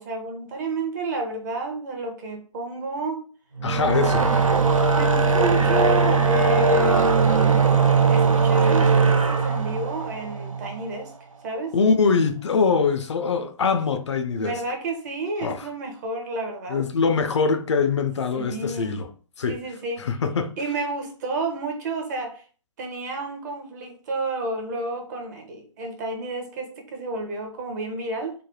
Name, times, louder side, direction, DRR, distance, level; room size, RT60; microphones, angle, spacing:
voice 1, 0.0-3.2 3.8-4.4 4.9-7.2 8.1-11.1 11.4-11.7 14.4-16.8 18.3-19.0 19.5-20.1 20.6-22.4 22.8-28.3, right 3 dB, 35° right, 0.7 m, -31 dB
voice 2, 3.6-4.5 11.7-14.6 15.4-15.7 16.7-19.1 19.4-19.6 20.0-20.5, left 5 dB, 60° left, 0.4 m, -23 dB
sound 1, 3.6-11.0, right 4 dB, 90° right, 0.4 m, -19 dB
3.2 x 2.1 x 2.2 m
figure-of-eight pair, 125°, 17 cm